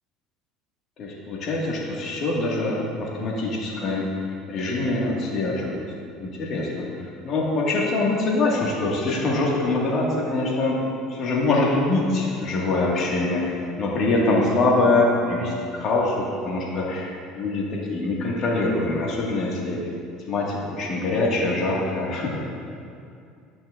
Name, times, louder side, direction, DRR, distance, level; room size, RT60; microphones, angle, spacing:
voice 1, 1.0-4.1 4.5-5.8 6.2-10.8 11.1-19.8 20.3-22.4, left 2 dB, 50° left, -3 dB, 1.8 m, -24 dB
11.5 x 6.1 x 2.5 m, 2.5 s
supercardioid pair, 85°, 0 cm